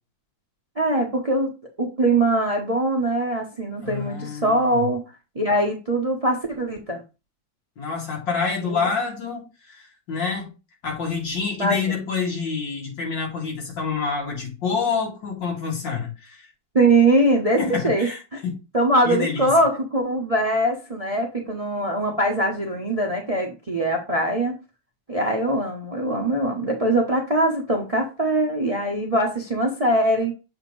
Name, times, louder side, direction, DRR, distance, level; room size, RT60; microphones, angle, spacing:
voice 1, 0.8-1.5 1.8-5.0 5.3-7.0 8.6-8.8 11.6-11.9 16.7-18.1 18.7-24.5 25.1-30.3, right 1 dB, 30° right, 0.7 m, -22 dB
voice 2, 3.8-4.9 7.8-10.5 10.8-16.5 17.6-18.6 19.0-19.5, left 5 dB, 70° left, 2.7 m, -27 dB
7.2 x 2.9 x 5.3 m
omnidirectional pair, 2.1 m